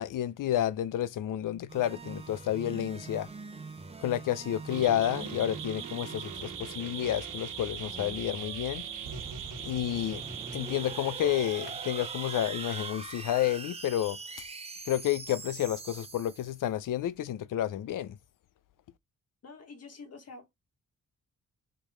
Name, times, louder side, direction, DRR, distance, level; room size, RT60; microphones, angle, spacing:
voice 1, 0.0-3.3 4.0-8.8 9.6-10.2 10.5-14.2 14.9-18.2, left 11 dB, 85° left, 0.6 m, -30 dB
sound 1, 1.7-16.6, right 3 dB, 20° right, 0.8 m, -44 dB
sound 2, 4.7-12.9, right 8 dB, 85° right, 1.3 m, -40 dB
voice 2, 19.4-20.5, left 4 dB, 50° left, 1.7 m, -47 dB
5.1 x 3.8 x 5.0 m
wide cardioid pair, 145°, 31 cm